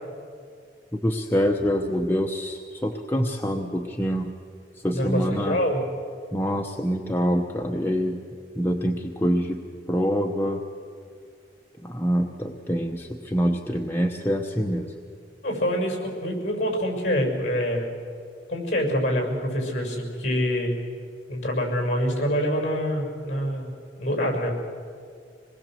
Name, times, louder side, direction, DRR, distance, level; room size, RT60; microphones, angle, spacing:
voice 1, 0.9-4.3 4.8-5.6 6.3-8.2 8.6-9.6 9.9-10.6 11.8-14.9, equal, 10° left, 1 dB, 1.0 m, -25 dB
voice 2, 4.9-5.8 15.4-17.9 18.5-20.8 21.3-24.5, equal, 45° left, 3 dB, 6.4 m, -26 dB
26.5 x 20.0 x 7.7 m, 2.2 s
head